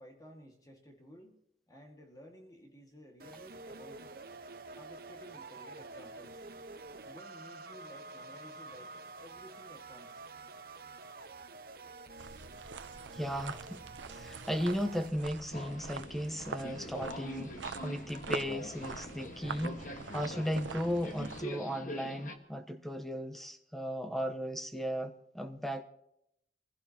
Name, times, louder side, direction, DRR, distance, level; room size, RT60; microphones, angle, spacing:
voice 1, 0.0-1.4 1.7-4.2 4.8-6.4 7.0-10.5, equal, 20° left, 1.9 m, -55 dB
sound 1, 3.2-15.1, right 3 dB, 55° right, 1.1 m, -48 dB
sound 2, 12.2-21.4, right 5 dB, 85° right, 0.8 m, -44 dB
voice 2, 13.1-13.8 14.1-25.8, equal, ahead, 0.9 m, -36 dB
Subway metro underground, 15.5-22.4, equal, 45° left, 1.5 m, -44 dB
26.0 x 16.0 x 2.9 m
head